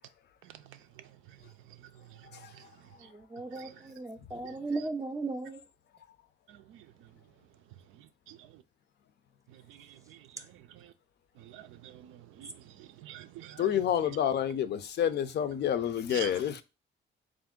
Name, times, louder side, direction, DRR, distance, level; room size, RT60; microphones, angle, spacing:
voice 1, 0.4-2.7 3.0-3.1 3.5-3.9 4.4-4.9 6.5-7.1 8.3-8.4 9.5-10.9 11.4-14.2 16.1-16.4, right 11 dB, 90° right, 0.4 m, -49 dB
voice 2, 3.1-5.6, right 3 dB, 15° right, 0.4 m, -36 dB
voice 3, 13.6-16.6, left 9 dB, 60° left, 0.5 m, -28 dB
3.4 x 2.5 x 3.6 m
cardioid pair, 90°, 20 cm